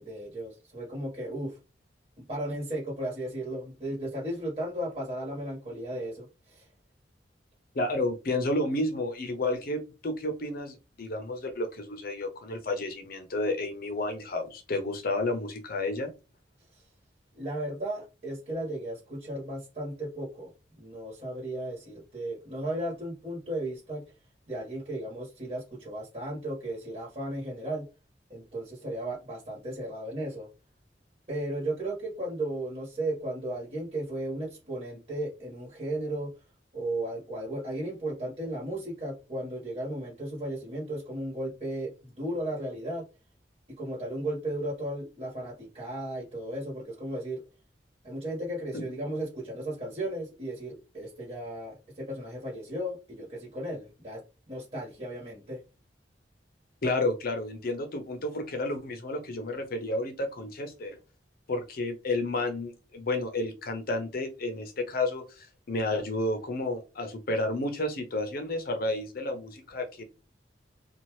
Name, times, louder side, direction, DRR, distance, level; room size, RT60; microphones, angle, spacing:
voice 1, 0.0-1.6 2.3-6.7 17.3-20.5 20.8-24.0 24.5-27.8 28.3-30.5 31.3-36.3 36.7-43.0 43.8-47.4 48.0-55.6, right 1 dB, 40° right, -5 dB, 1.4 m, -35 dB
voice 2, 7.7-16.1 48.7-48.9 56.8-61.0 61.5-70.0, left 2 dB, 60° left, 6 dB, 0.7 m, -31 dB
2.7 x 2.4 x 3.0 m, 0.29 s
head